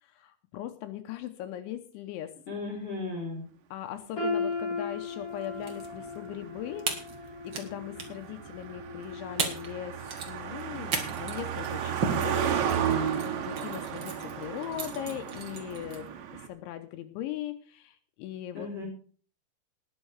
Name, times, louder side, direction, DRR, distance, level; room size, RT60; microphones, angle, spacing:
voice 1, 0.0-2.3 3.7-6.9 7.4-12.5 13.2-18.7, left 12 dB, 80° left, 9 dB, 3.2 m, -39 dB
voice 2, 2.5-3.4 18.5-18.9, left 3 dB, 20° left, -1 dB, 4.9 m, -35 dB
sound 1, 4.2-10.1 10.5-10.7 11.5-11.6, left 3 dB, 35° left, 2.8 m, -37 dB
Car passing by, 5.3-16.5, right 8 dB, 75° right, 3.7 m, -33 dB
sound 2, 5.4-5.8 6.1-6.2 6.8-7.7 7.9-8.3 9.0-9.1 9.4-9.7 10.0-16.1, right 5 dB, 55° right, 1.2 m, -36 dB
19.5 x 7.5 x 4.7 m, 0.42 s
omnidirectional pair, 5.5 m